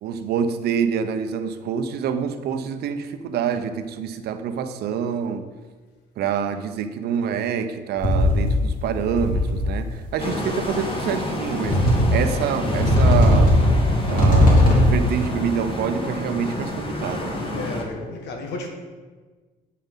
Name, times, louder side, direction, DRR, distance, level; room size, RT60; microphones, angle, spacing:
voice 1, 0.0-5.4 6.2-13.6 14.1-17.3, right 7 dB, 70° right, 9 dB, 0.8 m, -26 dB
sound 1, 8.0-8.7 9.0-9.8 10.6-10.7 11.6-12.3 12.7-15.0, left 1 dB, 55° left, 3.1 m, -17 dB
sound 2, 10.2-17.8, left 1 dB, 30° left, 1.7 m, -29 dB
voice 2, 17.5-18.7, left 3 dB, 85° left, 3 dB, 1.6 m, -33 dB
8.6 x 5.6 x 5.6 m, 1.4 s
cardioid pair, 110°, 17 cm